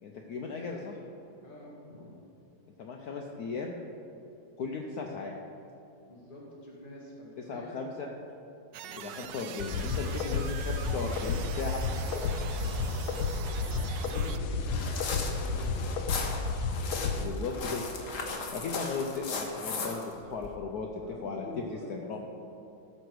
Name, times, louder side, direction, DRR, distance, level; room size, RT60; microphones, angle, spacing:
voice 1, 0.0-1.0 2.8-3.7 4.6-5.3 7.5-8.1 8.8-12.3 17.2-17.8 18.5-22.2, left 4 dB, 65° left, 1 dB, 1.0 m, -37 dB
voice 2, 1.4-2.1 6.1-8.0 12.7-12.8 14.0-16.2 16.8-17.3 20.9-22.2, left 1 dB, 25° left, -5 dB, 2.1 m, -46 dB
sound 1, 8.7-14.4, right 9 dB, 70° right, 1.1 m, -42 dB
sound 2, 9.6-17.3, left 4 dB, 80° left, 1.5 m, -32 dB
sound 3, 14.6-20.5, left 4 dB, 50° left, 1.2 m, -37 dB
14.0 x 6.5 x 4.7 m, 2.8 s
omnidirectional pair, 2.2 m